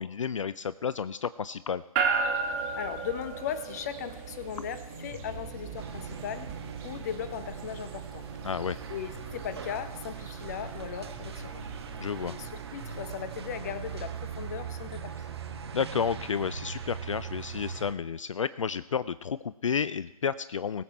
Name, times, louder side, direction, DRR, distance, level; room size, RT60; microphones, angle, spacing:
voice 1, 0.0-1.8 8.4-8.8 12.0-12.4 15.7-20.8, left 7 dB, 60° left, 16 dB, 0.4 m, -31 dB
sound 1, 2.0-16.2, right 5 dB, 20° right, 1.7 m, -37 dB
voice 2, 2.7-6.5 6.8-8.3 8.9-11.6 12.2-15.4, left 8 dB, 30° left, 12 dB, 0.8 m, -38 dB
sound 2, 4.9-17.7, right 2 dB, 75° left, 3.0 m, -48 dB
sound 3, 5.7-17.9, right 7 dB, 45° right, 1.1 m, -41 dB
20.5 x 7.7 x 4.3 m, 1.1 s
figure-of-eight pair, 140°, 19 cm